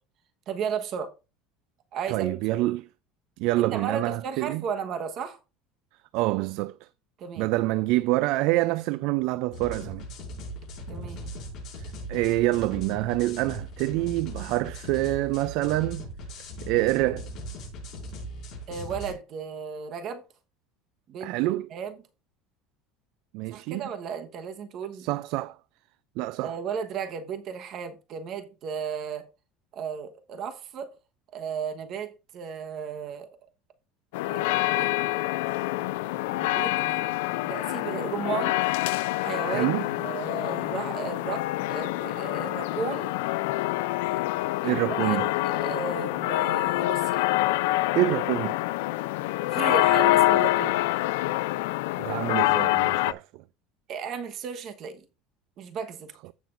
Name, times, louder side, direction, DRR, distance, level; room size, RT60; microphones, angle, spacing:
voice 1, 0.5-1.1 1.9-2.6 3.6-5.4 7.2-7.5 10.9-11.3 18.7-20.2 21.1-21.3 21.7-22.0 23.5-25.1 26.4-29.3 29.7-30.9 31.3-33.3 34.3-34.9 36.3-37.1 37.4-38.6 39.2-43.1 44.6-47.2 49.5-50.8 53.9-55.0 55.6-56.1, right 6 dB, 35° right, 1.1 m, -34 dB
voice 2, 2.1-2.8 3.4-4.6 6.1-6.9 7.4-10.1 11.8-16.1 16.6-17.3 21.2-21.7 23.3-23.9 25.0-25.6 26.2-26.6 39.4-39.9 44.6-45.3 47.9-48.6 52.0-53.4, right 18 dB, 55° right, 0.3 m, -26 dB
sound 1, 9.5-19.1, equal, 40° left, 5.2 m, -39 dB
sound 2, 34.1-53.1, left 18 dB, 90° left, 0.4 m, -26 dB
15.5 x 6.0 x 2.5 m
cardioid pair, 170°, 0 cm